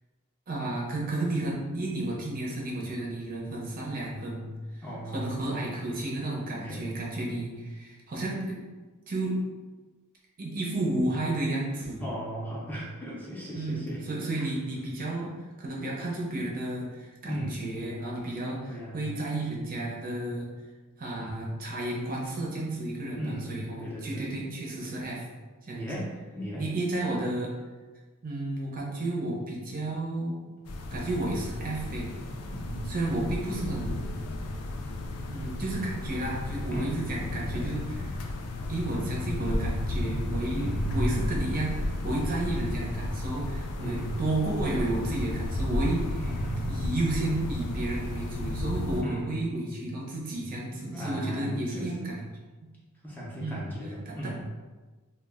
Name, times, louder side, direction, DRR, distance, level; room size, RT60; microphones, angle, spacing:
voice 1, 0.5-8.6 9.1-9.4 10.4-12.0 13.5-15.3 15.6-20.5 21.0-25.2 25.7-25.9 26.6-27.5 28.2-30.4 30.9-32.1 32.9-34.1 35.3-38.2 38.7-46.2 46.7-52.3 53.4-53.7 54.1-54.3, right 2 dB, 40° right, -3 dB, 0.6 m, -32 dB
voice 2, 4.8-5.4 6.5-6.9 11.9-14.0 14.3-14.5 17.2-17.7 18.6-19.1 21.2-21.4 23.2-24.4 25.7-26.7 32.4-33.1 36.7-37.0 37.5-37.7 40.6-41.2 43.8-44.2 46.2-46.7 49.0-49.4 50.9-52.2 53.0-54.4, right 1 dB, 10° left, -6 dB, 0.5 m, -36 dB
sound 1, 30.6-49.0, left 1 dB, 85° left, 0.3 m, -33 dB
2.2 x 2.1 x 3.5 m, 1.3 s
head